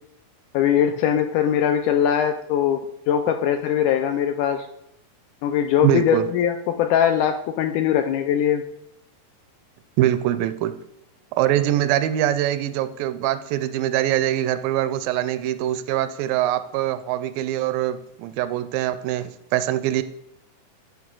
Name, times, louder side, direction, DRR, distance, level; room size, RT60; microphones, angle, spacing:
voice 1, 0.5-4.7 5.4-8.7, left 9 dB, 80° left, 7 dB, 1.8 m, -21 dB
voice 2, 5.8-6.2 10.0-10.7 11.4-20.0, right 12 dB, 85° right, 12 dB, 2.2 m, -23 dB
12.5 x 5.3 x 3.8 m, 0.77 s
omnidirectional pair, 4.1 m